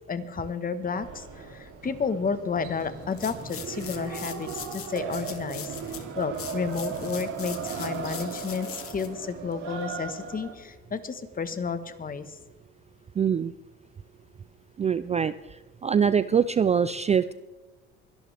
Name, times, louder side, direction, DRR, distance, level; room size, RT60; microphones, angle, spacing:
voice 1, 0.1-1.2 1.5-5.7 6.2-12.2, left 5 dB, 30° left, 11 dB, 1.3 m, -31 dB
sound 1, 1.0-10.5, right 6 dB, 85° right, 2.9 m, -37 dB
sound 2, 3.1-10.1, left 8 dB, 50° left, 1.7 m, -42 dB
voice 2, 13.2-13.5 14.8-15.3 15.8-17.3, right 7 dB, 25° right, 14 dB, 0.4 m, -23 dB
23.0 x 11.5 x 3.4 m, 1.2 s
cardioid pair, 110°, 29 cm